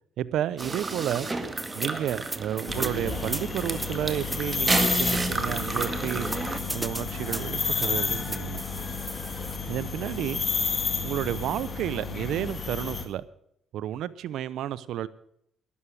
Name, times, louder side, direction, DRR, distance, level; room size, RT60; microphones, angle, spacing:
voice 1, 0.2-1.3 1.7-6.3 6.7-8.6 9.7-10.4 11.0-13.3 13.7-15.1, right 11 dB, 80° right, 17 dB, 0.7 m, -31 dB
sound 1, 0.6-6.6, right 2 dB, 25° right, 2.0 m, -31 dB
sound 2, 1.6-9.6, right 1 dB, 10° right, 0.6 m, -37 dB
sound 3, 2.7-13.1, left 5 dB, 40° left, 2.2 m, -31 dB
13.0 x 11.5 x 6.4 m, 0.73 s
cardioid pair, 90°, 0 cm